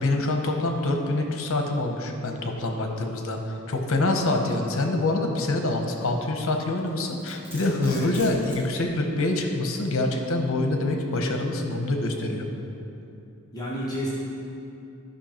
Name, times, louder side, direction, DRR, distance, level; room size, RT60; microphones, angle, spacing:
voice 1, 0.0-12.5, left 2 dB, 65° left, 3 dB, 1.0 m, -26 dB
Domestic sounds home sounds, 6.8-8.7, equal, 10° right, 2.0 m, -43 dB
voice 2, 13.5-14.1, equal, 15° left, -7 dB, 1.3 m, -30 dB
13.0 x 5.6 x 4.4 m, 2.7 s
head